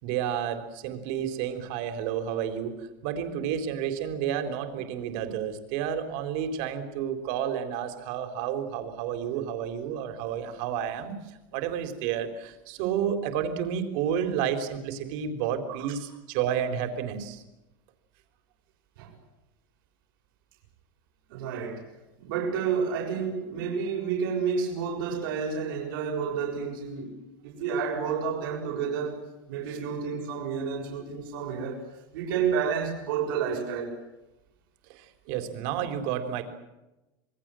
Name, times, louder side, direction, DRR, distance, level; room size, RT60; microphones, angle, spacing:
voice 1, 0.0-17.4 29.7-29.8 34.9-36.4, right 9 dB, 55° right, 4.0 m, -31 dB
voice 2, 21.3-21.9 22.2-27.2 27.4-29.2 29.5-34.0, right 6 dB, 80° right, 6.7 m, -30 dB
27.5 x 22.0 x 7.8 m
cardioid pair, 180°, 11 cm